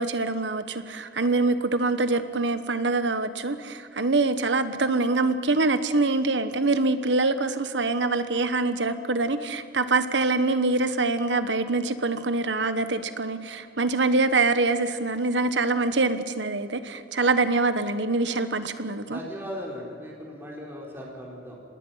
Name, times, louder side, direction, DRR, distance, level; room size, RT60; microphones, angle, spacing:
voice 1, 0.0-19.2, right 3 dB, 90° right, 11 dB, 1.3 m, -24 dB
voice 2, 19.1-21.5, equal, 15° right, -2 dB, 4.4 m, -38 dB
26.0 x 20.0 x 5.8 m, 2.5 s
head